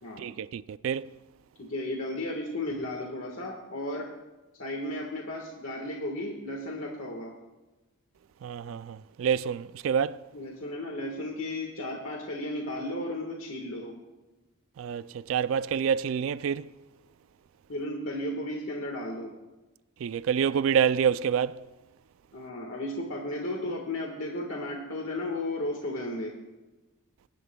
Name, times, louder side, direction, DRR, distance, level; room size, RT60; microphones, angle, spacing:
voice 1, 0.2-1.0 8.4-10.2 14.8-16.7 20.0-21.5, right 7 dB, 70° right, 0.3 m, -27 dB
voice 2, 1.6-4.1 4.6-7.3 10.3-13.9 17.7-19.3 22.3-26.3, left 1 dB, 70° left, 1.6 m, -34 dB
23.0 x 11.5 x 2.3 m
head